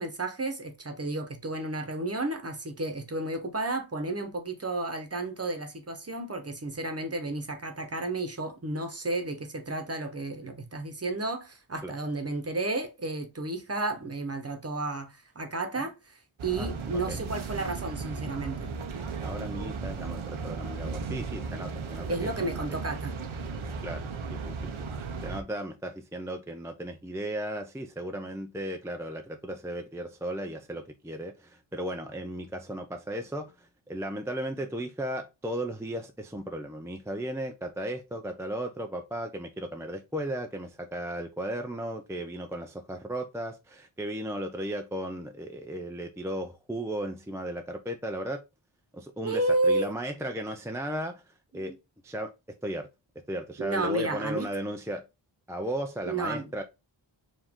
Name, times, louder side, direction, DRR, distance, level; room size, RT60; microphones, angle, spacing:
voice 1, 0.0-18.7 22.1-23.1 49.2-49.9 51.5-51.7 53.6-54.5 56.1-56.5, right 2 dB, 30° right, 1.0 m, -32 dB
sound 1, 16.4-25.4, right 4 dB, 85° right, 0.8 m, -36 dB
voice 2, 19.2-22.5 23.8-24.7 25.2-48.4 48.9-51.2 51.5-51.7 52.0-52.3 52.6-52.9 53.3-55.0 55.5-56.6, right 1 dB, 5° right, 0.4 m, -35 dB
4.9 x 2.6 x 3.5 m
wide cardioid pair, 70°, 47 cm